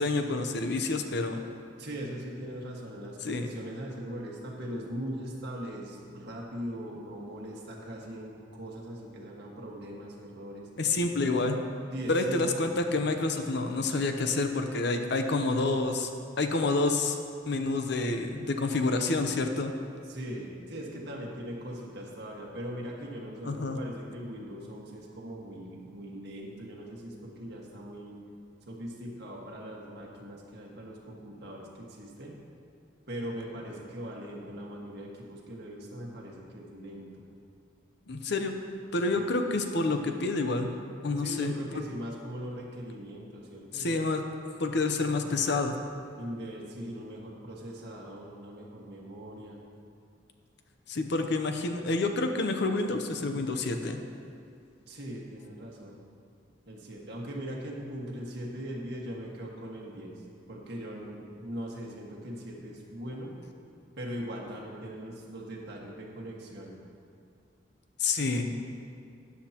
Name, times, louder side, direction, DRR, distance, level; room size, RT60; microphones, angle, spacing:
voice 1, 0.0-1.4 3.2-3.5 10.8-11.6 12.1-16.1 16.4-17.2 17.5-19.7 23.4-23.8 38.1-38.5 38.9-40.7 41.0-41.5 43.7-44.2 44.6-45.7 50.9-54.0 68.0-68.5, left 3 dB, 65° left, 6 dB, 0.7 m, -28 dB
voice 2, 1.8-10.7 11.9-12.7 20.1-28.2 28.7-32.4 33.1-37.2 39.2-39.5 41.2-44.1 46.2-49.6 54.9-56.0 56.7-60.2 60.5-63.3 64.0-66.7, equal, 60° right, -2 dB, 1.7 m, -40 dB
13.0 x 9.8 x 2.9 m, 2.4 s
head